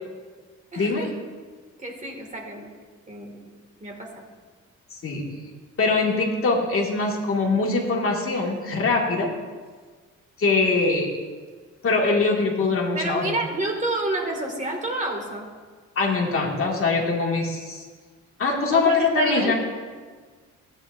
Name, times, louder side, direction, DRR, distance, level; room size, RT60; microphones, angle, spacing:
voice 1, 0.7-1.1 1.8-2.7 3.1-3.4 3.8-4.2 12.9-15.5 18.7-19.5, right 2 dB, 25° right, 1 dB, 1.9 m, -29 dB
voice 2, 4.9-5.2 5.8-9.3 10.4-11.1 11.8-13.4 16.0-17.9 18.4-19.5, left 3 dB, 45° left, -1 dB, 1.9 m, -23 dB
13.5 x 9.0 x 2.5 m, 1.5 s
cardioid pair, 90°, 30 cm